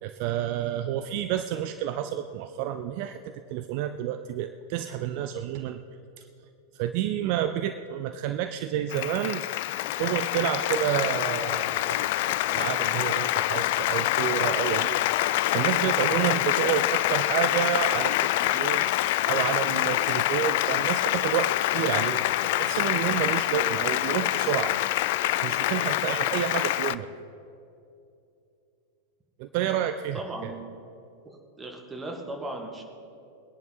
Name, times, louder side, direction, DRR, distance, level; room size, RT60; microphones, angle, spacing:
voice 1, 0.0-5.8 6.2-6.3 6.7-9.4 10.0-18.9 19.3-24.9 25.4-27.1 29.4-30.5, right 11 dB, 45° right, 10 dB, 0.5 m, -30 dB
Applause, 8.9-27.0, left 16 dB, 50° left, 0.4 m, -26 dB
voice 2, 30.1-30.9 31.3-32.8, right 1 dB, 10° right, 2 dB, 1.9 m, -37 dB
21.5 x 10.5 x 4.2 m, 2.6 s
figure-of-eight pair, 90°, 0 cm